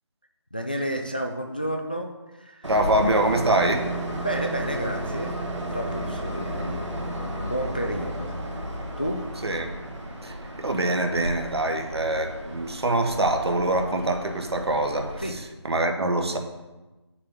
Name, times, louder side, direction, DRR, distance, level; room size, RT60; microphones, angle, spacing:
voice 1, 0.5-2.7 4.2-9.2 15.2-15.4, right 1 dB, 20° left, 4 dB, 0.3 m, -32 dB
Train, 2.6-15.3, right 1 dB, 80° right, 1.9 m, -33 dB
voice 2, 2.7-3.8 9.4-9.7 10.2-15.1 15.6-16.4, right 2 dB, 60° right, 5 dB, 1.4 m, -24 dB
8.7 x 6.6 x 3.8 m, 1.1 s
figure-of-eight pair, 165°, 15 cm